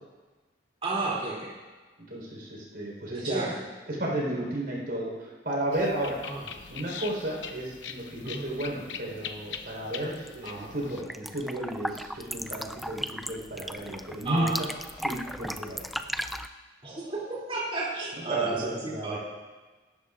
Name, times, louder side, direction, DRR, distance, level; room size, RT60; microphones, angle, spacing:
voice 1, 0.8-1.6 3.1-3.6 6.2-6.5 8.2-8.4 10.4-10.7 14.2-14.6 16.8-19.2, right 3 dB, 30° right, -5 dB, 2.9 m, -32 dB
voice 2, 2.1-3.5 3.9-6.2 6.7-14.5 15.0-15.9 18.3-19.2, right 1 dB, 55° right, -2 dB, 4.3 m, -33 dB
sound 1, 5.7-11.0, left 6 dB, 75° left, 0.9 m, -42 dB
sound 2, 10.1-10.5 10.8-16.5, equal, ahead, 0.3 m, -36 dB
24.5 x 12.5 x 2.5 m, 1.3 s
head